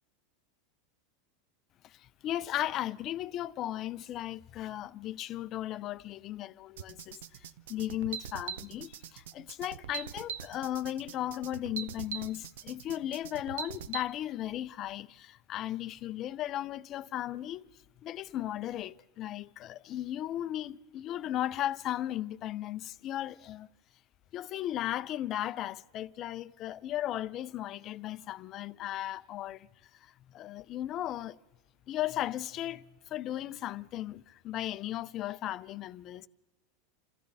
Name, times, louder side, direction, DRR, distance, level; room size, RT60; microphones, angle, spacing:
voice 1, 2.2-7.2 7.7-17.7 18.0-23.7 24.3-29.7 30.3-31.4 31.9-32.8 33.1-36.3, left 13 dB, 30° left, 0.5 m, -36 dB
sound 1, 6.8-14.0, right 8 dB, 85° right, 0.7 m, -41 dB
28.0 x 15.0 x 3.4 m
supercardioid pair, 160°, 0 cm